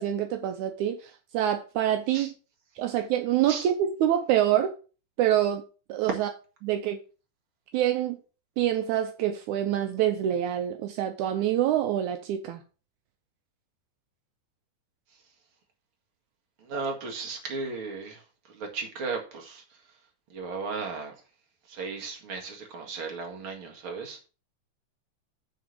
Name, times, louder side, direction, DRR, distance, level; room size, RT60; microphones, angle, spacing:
voice 1, 0.0-2.3 2.8-4.7 5.2-5.6 5.9-6.3 6.6-7.0 7.7-8.2 8.6-12.6, right 11 dB, 80° right, 2.1 m, -26 dB
voice 2, 16.6-20.0 20.3-21.2 21.7-24.3, right 4 dB, 45° right, 2.5 m, -36 dB
9.7 x 3.6 x 6.7 m
omnidirectional pair, 3.6 m